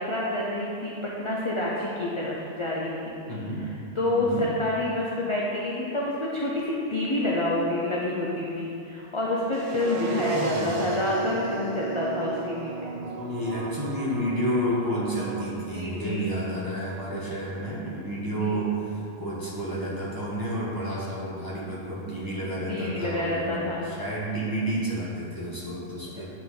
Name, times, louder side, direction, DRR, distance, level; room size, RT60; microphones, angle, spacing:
voice 1, 0.0-3.2 3.6-3.7 4.0-12.9 15.7-16.3 18.4-18.6 22.7-23.9, left 1 dB, 35° left, -5 dB, 0.6 m, -28 dB
voice 2, 3.3-3.6 4.1-4.5 10.2-10.9 12.9-26.3, right 1 dB, 15° right, -8 dB, 1.5 m, -31 dB
sound 1, 9.5-15.5, right 3 dB, 60° right, 0.5 m, -34 dB
9.0 x 3.9 x 3.8 m, 2.7 s
omnidirectional pair, 1.2 m